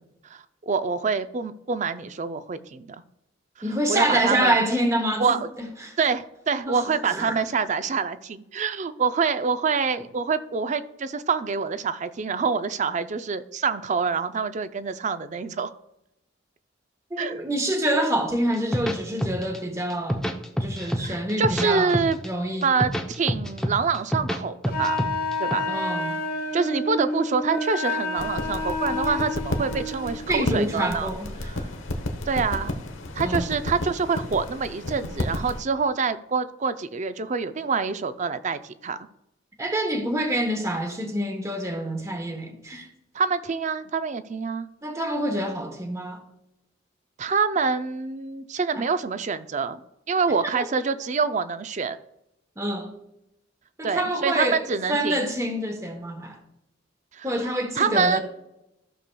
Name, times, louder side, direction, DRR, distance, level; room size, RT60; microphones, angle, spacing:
voice 1, 0.3-3.0 3.9-4.6 5.2-5.4 6.0-15.7 17.2-17.4 21.0-22.2 22.6-25.0 25.4-25.7 26.5-31.1 31.4-31.7 32.3-32.7 33.2-39.0 43.1-44.7 47.2-49.8 50.1-52.0 53.8-55.3 57.1-58.2, right 5 dB, 40° right, 0.4 m, -26 dB
voice 2, 3.6-5.9 6.7-7.4 17.1-20.2 20.6-21.9 22.2-22.7 25.6-26.2 30.3-31.3 33.2-33.5 39.6-42.9 44.8-46.2 48.8-48.9 50.5-50.7 52.6-52.9 53.8-54.6 54.9-56.4 57.2-58.2, right 1 dB, 15° right, 1.0 m, -26 dB
sound 1, 18.5-19.6 19.9-21.0 21.3-22.3 22.6-24.4 24.6-25.5, equal, 5° left, 0.6 m, -26 dB
Wind instrument woodwind instrument, 24.7-30.2, left 2 dB, 50° left, 1.1 m, -29 dB
sound 2, 28.2-35.6, left 1 dB, 85° left, 1.0 m, -32 dB
14.5 x 6.7 x 2.3 m
head